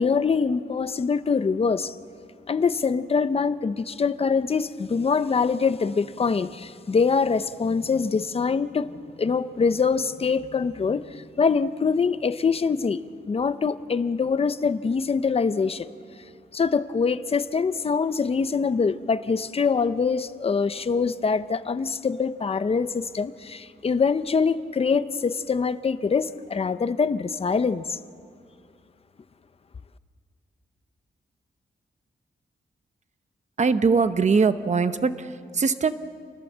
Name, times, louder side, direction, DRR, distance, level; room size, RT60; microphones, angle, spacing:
voice 1, 0.0-2.0 2.5-13.0 13.3-15.9 16.5-28.0, left 5 dB, 35° left, 13 dB, 0.7 m, -24 dB
voice 2, 33.6-35.9, right 5 dB, 40° right, 11 dB, 0.9 m, -22 dB
28.5 x 20.0 x 7.4 m, 2.1 s
wide cardioid pair, 170°, 18 cm